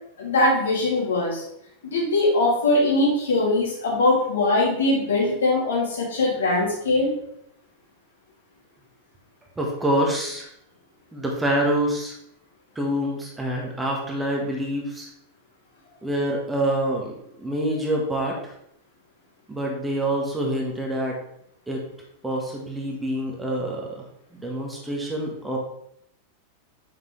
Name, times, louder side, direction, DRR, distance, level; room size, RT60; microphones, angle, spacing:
voice 1, 0.2-1.4 1.8-7.1, left 2 dB, 65° left, -4 dB, 2.5 m, -21 dB
voice 2, 9.6-10.5 11.1-12.1 12.7-15.1 16.0-18.5 19.5-21.2 21.7-21.8 22.2-24.0 24.3-25.6, right 1 dB, 10° right, -1 dB, 1.5 m, -26 dB
7.1 x 6.0 x 3.2 m, 0.73 s
figure-of-eight pair, 90°, 0 cm